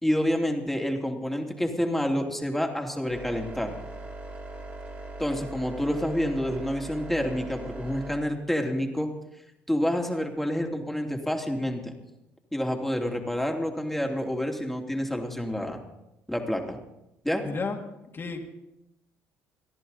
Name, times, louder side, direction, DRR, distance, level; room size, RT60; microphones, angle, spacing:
voice 1, 0.0-3.7 5.2-9.1 9.7-11.9 12.5-15.8 16.3-16.8 17.2-17.4, equal, 5° left, 2 dB, 3.0 m, -28 dB
sound 1, 3.1-8.2, right 2 dB, 30° right, 3.3 m, -40 dB
voice 2, 17.4-17.8 18.1-18.5, left 4 dB, 35° left, 3 dB, 2.6 m, -32 dB
29.0 x 10.5 x 4.2 m, 0.90 s
supercardioid pair, 70°, 6 cm